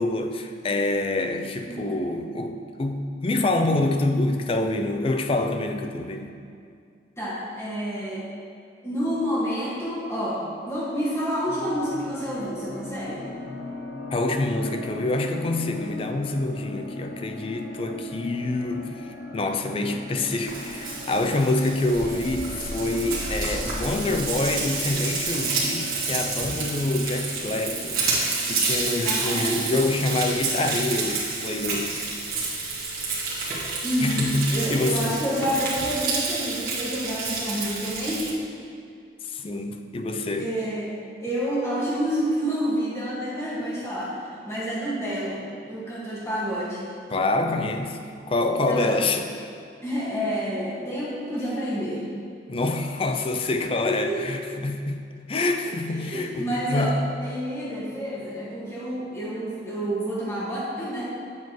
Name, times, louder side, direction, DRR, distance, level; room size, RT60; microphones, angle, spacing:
voice 1, 0.0-6.3 14.1-28.0 28.4-32.0 34.0-35.2 39.2-40.5 47.1-48.0 48.3-49.5 52.5-55.0 55.3-57.0, left 2 dB, 30° left, 5 dB, 0.4 m, -26 dB
voice 2, 7.2-8.3 8.8-13.2 29.0-29.8 33.8-38.5 40.3-46.8 48.6-49.0 49.8-52.0 53.8-54.2 55.9-61.0, equal, 15° left, -7 dB, 1.6 m, -29 dB
sound 1, 11.5-30.4, left 1 dB, 60° left, 0.7 m, -40 dB
Frying (food), 20.5-38.3, right 3 dB, 50° right, 1.6 m, -29 dB
8.1 x 6.9 x 3.0 m, 2.3 s
head